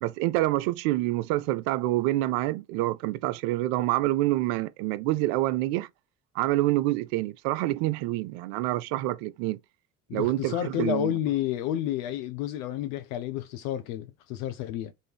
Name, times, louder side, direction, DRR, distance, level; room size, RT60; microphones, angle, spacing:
voice 1, 0.0-5.9 6.4-9.6 10.1-11.1, right 17 dB, 60° right, 0.5 m, -27 dB
voice 2, 10.1-14.9, left 12 dB, 65° left, 0.6 m, -30 dB
3.5 x 2.6 x 3.3 m
figure-of-eight pair, 60°, 45 cm